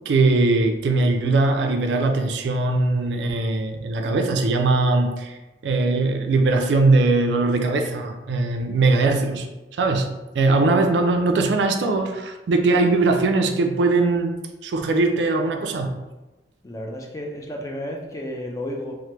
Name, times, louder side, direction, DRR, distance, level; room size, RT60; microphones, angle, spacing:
voice 1, 0.1-5.4 5.6-9.5 9.8-10.1 10.3-14.3 14.6-15.9, right 3 dB, 75° right, 5 dB, 0.4 m, -20 dB
voice 2, 16.6-19.0, left 1 dB, 20° left, 1 dB, 0.3 m, -32 dB
3.2 x 2.1 x 2.9 m, 1.1 s
head